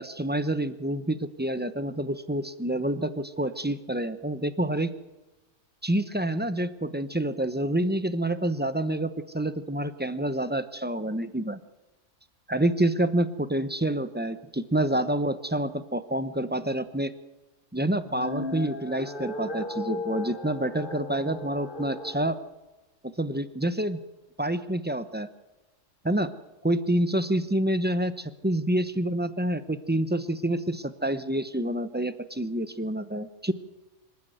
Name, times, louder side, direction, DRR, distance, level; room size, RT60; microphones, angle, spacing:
voice 1, 0.0-4.9 5.8-11.6 12.5-17.1 17.7-22.4 23.2-24.0 24.4-25.3 26.0-26.3 26.6-33.5, right 1 dB, 10° right, 12 dB, 0.8 m, -28 dB
sound 1, 18.0-22.3, left 2 dB, 45° left, 1.7 m, -36 dB
25.5 x 13.5 x 8.0 m, 1.1 s
omnidirectional pair, 1.3 m